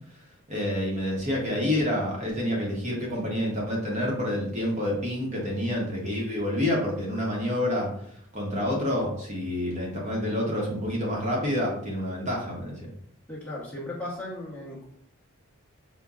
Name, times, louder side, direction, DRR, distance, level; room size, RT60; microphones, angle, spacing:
voice 1, 0.5-7.9 8.3-12.8, left 1 dB, 30° right, -2 dB, 0.9 m, -28 dB
voice 2, 13.3-14.9, left 1 dB, 5° left, -6 dB, 1.0 m, -36 dB
5.4 x 2.1 x 2.4 m, 0.67 s
head